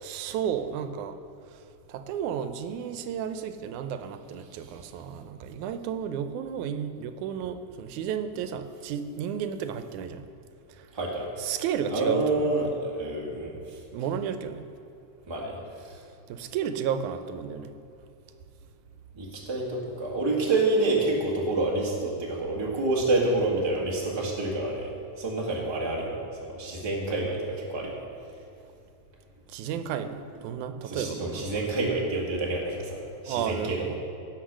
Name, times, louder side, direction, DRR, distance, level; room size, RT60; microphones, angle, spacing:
voice 1, 0.0-1.2 1.9-10.2 11.4-12.8 13.9-14.7 16.3-17.7 29.5-31.7 33.3-33.9, right 8 dB, 90° right, 9 dB, 2.1 m, -32 dB
voice 2, 10.9-11.3 11.9-13.5 15.3-15.6 19.2-24.9 25.2-27.9 30.8-33.0 33.2-33.9, right 2 dB, 10° right, -3 dB, 1.4 m, -28 dB
16.0 x 6.1 x 6.3 m, 2.6 s
omnidirectional pair, 3.4 m